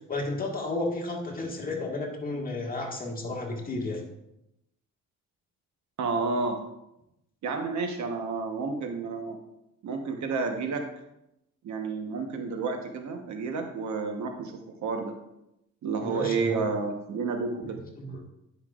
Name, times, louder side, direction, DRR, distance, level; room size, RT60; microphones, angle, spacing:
voice 1, 0.1-4.0 16.0-16.6 18.0-18.3, left 2 dB, 30° left, -1 dB, 1.7 m, -32 dB
voice 2, 6.0-6.6 7.4-9.4 9.8-10.8 11.6-14.5 14.8-15.1 15.8-17.8, right 4 dB, 70° right, 4 dB, 1.1 m, -30 dB
9.8 x 5.5 x 2.5 m, 0.86 s
cardioid pair, 90°, 30 cm